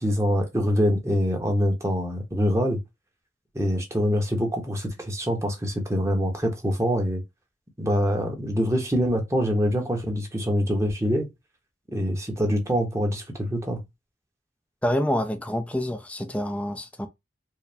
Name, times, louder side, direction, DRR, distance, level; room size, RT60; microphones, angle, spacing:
voice 1, 0.0-2.8 3.5-7.2 7.8-11.3 11.9-13.8, equal, 15° right, 1.0 m, -24 dB
voice 2, 14.8-17.1, equal, 5° left, 0.4 m, -27 dB
4.6 x 2.1 x 3.4 m
head